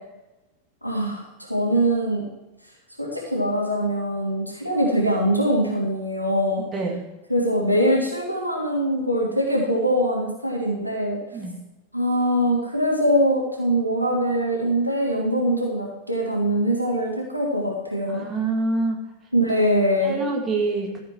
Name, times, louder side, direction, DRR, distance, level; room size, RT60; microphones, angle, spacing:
voice 1, 0.8-2.2 3.0-6.6 7.3-11.2 11.9-18.2 19.3-20.2, equal, 90° right, -2 dB, 2.7 m, -23 dB
voice 2, 6.7-7.0 11.3-11.6 18.1-19.0 20.0-20.9, right 3 dB, 20° right, 1 dB, 2.2 m, -25 dB
14.0 x 7.3 x 4.5 m, 1.0 s
figure-of-eight pair, 90°, 0 cm